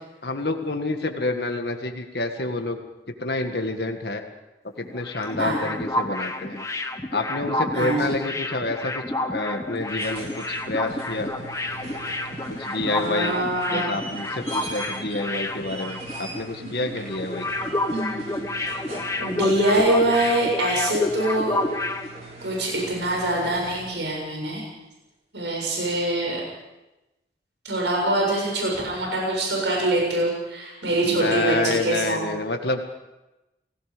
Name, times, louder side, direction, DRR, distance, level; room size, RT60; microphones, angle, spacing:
voice 1, 0.2-2.8 3.2-4.2 4.8-6.7 7.1-9.0 9.3-11.3 12.6-13.4 13.7-17.5 31.0-32.8, left 2 dB, 65° left, 4 dB, 1.7 m, -28 dB
sound 1, 4.8-16.4 16.6-16.8 17.1-22.1, left 1 dB, 15° left, 1.3 m, -29 dB
voice 2, 7.7-8.1 12.8-13.9 17.9-18.8 19.2-21.6 22.4-24.6 25.3-26.4 27.6-32.2, right 1 dB, 85° right, -2 dB, 7.0 m, -24 dB
sound 2, 9.8-24.1 25.9-26.0, right 2 dB, 40° right, 4.8 m, -40 dB
30.0 x 18.0 x 5.2 m, 1.0 s
head